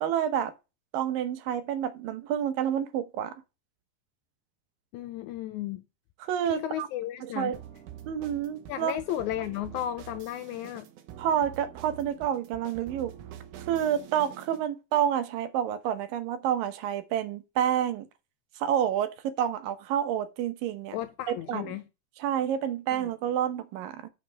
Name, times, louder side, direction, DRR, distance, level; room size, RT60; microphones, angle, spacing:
voice 1, 0.0-0.5 0.9-3.3 6.2-6.9 7.4-7.6 8.1-8.9 11.2-13.1 13.6-18.1 18.6-21.0 21.3-21.8 22.2-24.1, right 10 dB, 90° right, 2.6 m, -29 dB
voice 2, 4.9-5.8 6.5-7.5 8.7-10.9 20.9-21.8 22.9-23.1, left 12 dB, 80° left, 1.7 m, -34 dB
sound 1, 7.5-14.7, right 10 dB, 75° right, 2.4 m, -46 dB
6.4 x 5.4 x 6.0 m
omnidirectional pair, 3.8 m